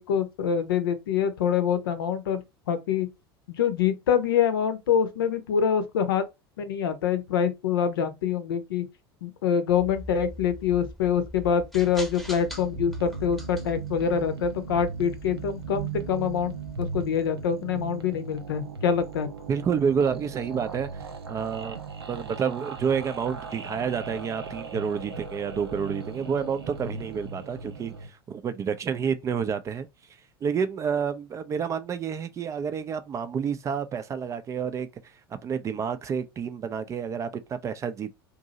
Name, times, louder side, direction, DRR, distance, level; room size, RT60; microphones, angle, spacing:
voice 1, 0.0-2.4 2.7-3.1 3.5-6.2 6.6-8.8 9.2-19.3, left 7 dB, 65° left, 0.7 m, -25 dB
sound 1, 9.7-17.1, equal, ahead, 1.0 m, -43 dB
sound 2, 12.2-28.1, right 5 dB, 80° right, 0.6 m, -38 dB
voice 2, 19.5-21.0 21.3-21.8 22.1-29.9 30.4-34.9 35.3-38.1, right 6 dB, 25° right, 0.4 m, -29 dB
2.7 x 2.6 x 3.9 m
figure-of-eight pair, 75°, 13 cm